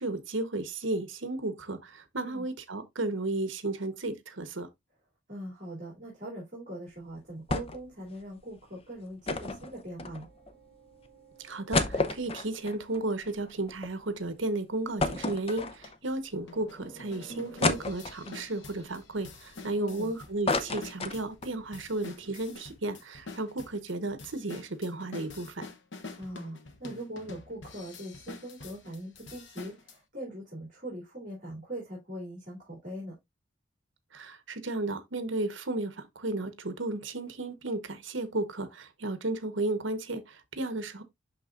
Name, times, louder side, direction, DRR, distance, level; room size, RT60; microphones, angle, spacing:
voice 1, 0.0-4.7 11.4-25.6 34.1-41.0, right 2 dB, 70° right, 1.1 m, -34 dB
voice 2, 5.3-10.3 19.8-20.1 26.2-33.2, right 1 dB, 40° right, 3.1 m, -41 dB
sound 1, 7.5-7.9 8.2-8.3 9.3-10.5 11.1-11.2 11.5-13.9 14.3-14.4 15.0-16.1 16.7-16.8 17.6-18.5 19.0-20.0 20.2-21.6 21.9-22.0 22.3-22.5, left 3 dB, 30° left, 0.6 m, -31 dB
sound 2, 8.9-13.7 16.2-17.8, right 4 dB, 5° right, 3.4 m, -56 dB
sound 3, 15.2-15.3 15.8-15.9 16.5-30.0, left 3 dB, 65° left, 1.0 m, -47 dB
11.0 x 3.7 x 2.5 m
head